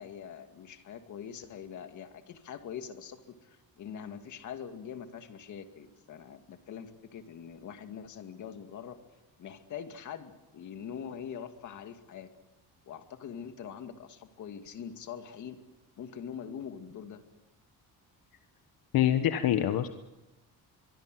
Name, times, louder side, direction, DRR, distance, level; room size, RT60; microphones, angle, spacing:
voice 1, 0.0-9.0 9.4-12.3 12.9-15.6 16.0-17.2, left 8 dB, 50° left, 7 dB, 2.2 m, -43 dB
voice 2, 18.9-19.9, left 11 dB, 70° left, 8 dB, 1.3 m, -25 dB
24.0 x 23.5 x 7.8 m, 1.0 s
cardioid pair, 170°, 37 cm